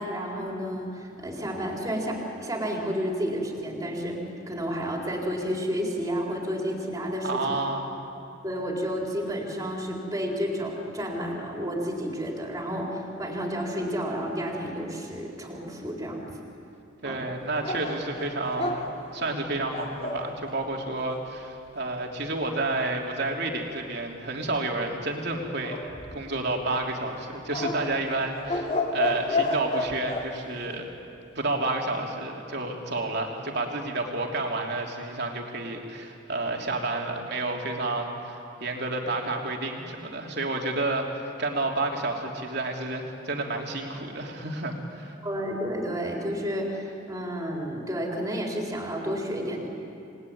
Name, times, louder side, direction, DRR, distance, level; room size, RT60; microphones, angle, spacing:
voice 1, 0.0-7.6 8.1-16.4 17.0-17.2 45.2-49.7, equal, 15° right, -1 dB, 4.2 m, -31 dB
voice 2, 7.2-7.9 17.0-25.8 26.1-30.9 31.3-45.1, right 2 dB, 55° right, 1 dB, 3.3 m, -30 dB
sound 1, 17.6-20.3 25.6-26.5 27.5-30.3, left 2 dB, 30° left, 3.2 m, -30 dB
28.5 x 20.5 x 9.6 m, 2.7 s
head